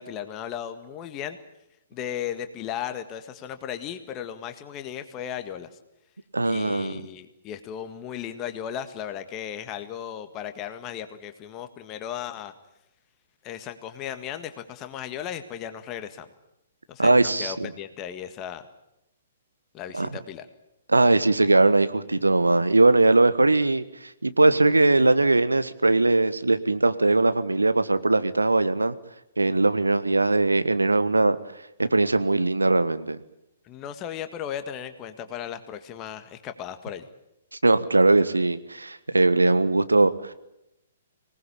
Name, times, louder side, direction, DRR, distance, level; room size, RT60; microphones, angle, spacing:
voice 1, 0.0-1.4 1.9-5.7 6.4-12.5 13.4-16.3 16.9-18.7 19.7-20.5 33.6-37.1, left 9 dB, 25° left, 8 dB, 1.7 m, -36 dB
voice 2, 6.3-6.9 17.0-17.7 19.9-20.1 20.9-28.9 29.4-31.4 31.8-33.2 37.6-40.3, right 2 dB, 80° right, 13 dB, 1.4 m, -20 dB
25.0 x 19.0 x 8.7 m, 0.86 s
figure-of-eight pair, 120°, 0 cm